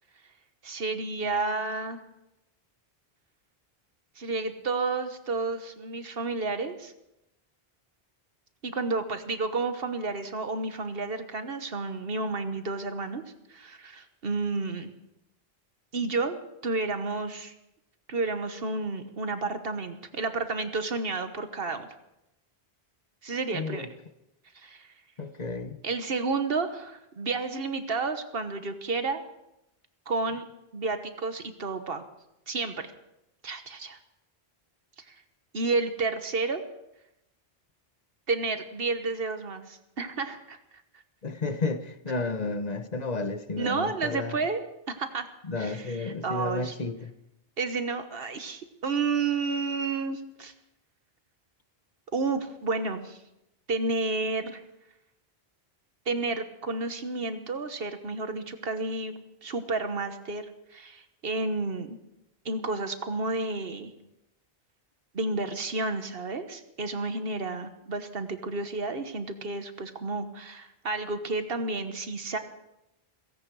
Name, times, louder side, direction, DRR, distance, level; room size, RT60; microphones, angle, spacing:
voice 1, 0.6-2.0 4.2-6.9 8.6-13.2 13.5-14.9 15.9-17.5 18.1-21.9 23.2-23.9 24.5-24.9 25.8-29.2 30.1-30.4 30.7-32.0 32.5-32.9 33.4-34.0 35.1-35.2 35.5-36.6 38.3-40.6 43.6-45.3 45.6-46.7 47.6-50.5 52.1-53.2 53.7-54.6 56.1-59.1 59.4-62.0 62.4-63.9 65.1-72.4, right 3 dB, 65° right, 1.5 m, -31 dB
voice 2, 23.5-23.9 25.2-25.8 41.2-44.4 45.4-47.1, left 3 dB, 45° left, 1.0 m, -32 dB
17.0 x 16.5 x 4.8 m
omnidirectional pair, 1.0 m